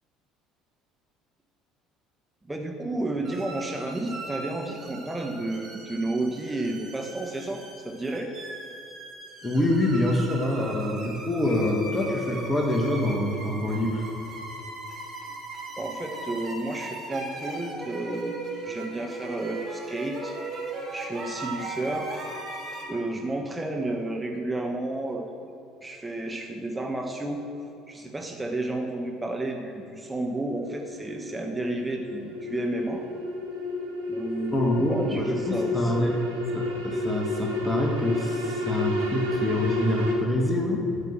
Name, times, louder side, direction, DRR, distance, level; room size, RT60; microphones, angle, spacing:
voice 1, 2.5-8.3 15.8-20.3 20.9-22.2 22.9-25.3 25.8-27.4 27.9-33.0 34.1-36.1, right 2 dB, 15° right, 2 dB, 1.2 m, -31 dB
sound 1, 3.2-22.8, right 2 dB, 40° right, 3.1 m, -38 dB
voice 2, 9.4-14.0 34.5-36.2 36.5-41.0, left 1 dB, 15° left, -1 dB, 1.8 m, -26 dB
sound 2, 29.7-40.1, left 2 dB, 85° right, 1.5 m, -31 dB
11.5 x 6.1 x 7.5 m, 2.8 s
hypercardioid pair, 60°, 0 cm